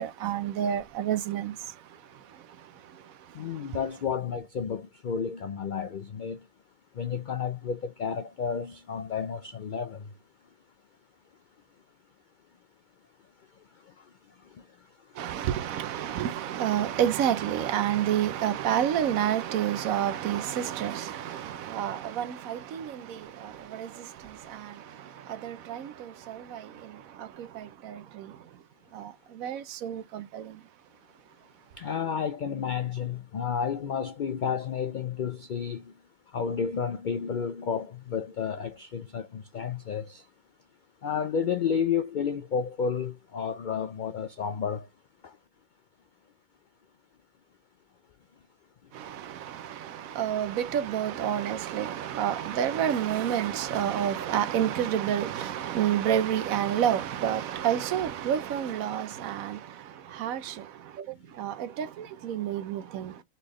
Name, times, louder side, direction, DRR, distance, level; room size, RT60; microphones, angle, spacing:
voice 1, 0.0-1.8 2.1-3.1 15.2-28.4 28.9-30.6 48.9-63.2, right 10 dB, 85° right, 1.1 m, -30 dB
voice 2, 3.3-6.4 7.0-10.1 31.8-35.9 36.3-40.2 41.0-44.9 45.2-45.3, left 7 dB, 80° left, 0.4 m, -31 dB
4.2 x 3.5 x 3.0 m
omnidirectional pair, 1.4 m